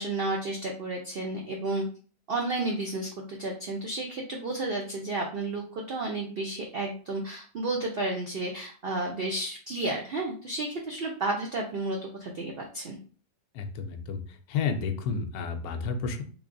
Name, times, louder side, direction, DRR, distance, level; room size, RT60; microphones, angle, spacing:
voice 1, 0.0-1.8 2.3-13.0, right 2 dB, 90° right, 0 dB, 0.5 m, -32 dB
voice 2, 13.5-14.2 14.5-16.2, left 5 dB, 75° left, 7 dB, 1.0 m, -31 dB
3.6 x 3.2 x 2.5 m, 0.42 s
omnidirectional pair, 1.7 m